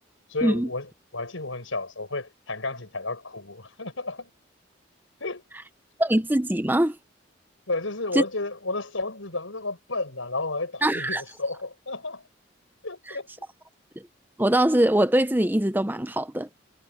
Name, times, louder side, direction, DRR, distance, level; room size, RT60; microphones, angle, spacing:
voice 1, 0.3-4.3 5.2-5.4 7.7-12.2 12.8-13.5, left 2 dB, 85° left, 6.3 m, -32 dB
voice 2, 6.0-7.0 8.1-8.2 10.8-11.2 14.4-16.5, right 1 dB, 10° right, 0.8 m, -22 dB
head